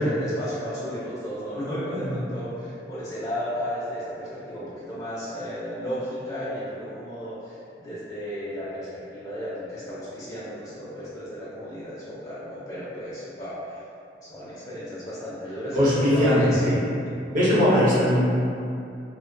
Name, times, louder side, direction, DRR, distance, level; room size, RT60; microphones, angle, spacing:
voice 1, 0.0-13.8 14.2-16.6, equal, 20° left, -11 dB, 0.4 m, -34 dB
voice 2, 15.7-16.8 17.3-18.4, equal, 45° right, -8 dB, 0.6 m, -20 dB
2.4 x 2.1 x 2.5 m, 2.5 s
head